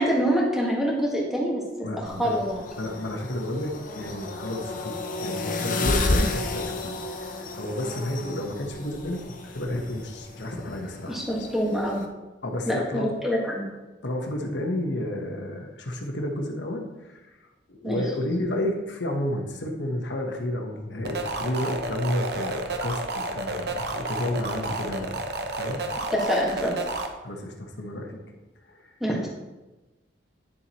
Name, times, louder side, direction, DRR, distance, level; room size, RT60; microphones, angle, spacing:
voice 1, 0.0-1.6 1.9-2.6 11.1-12.0 12.7-13.7 17.8-18.0 26.1-26.8 29.0-29.3, equal, ahead, -3 dB, 1.6 m, -25 dB
voice 2, 1.8-2.4 2.8-6.9 7.3-11.5 12.4-13.1 14.0-17.2 17.7-26.0 27.2-28.2 28.7-28.9, left 1 dB, 70° left, 2 dB, 1.2 m, -31 dB
sound 1, 2.1-12.1, left 2 dB, 45° left, 0.8 m, -32 dB
sound 2, 21.0-27.1, right 2 dB, 60° right, 0.8 m, -31 dB
10.0 x 7.1 x 3.0 m, 1.1 s
head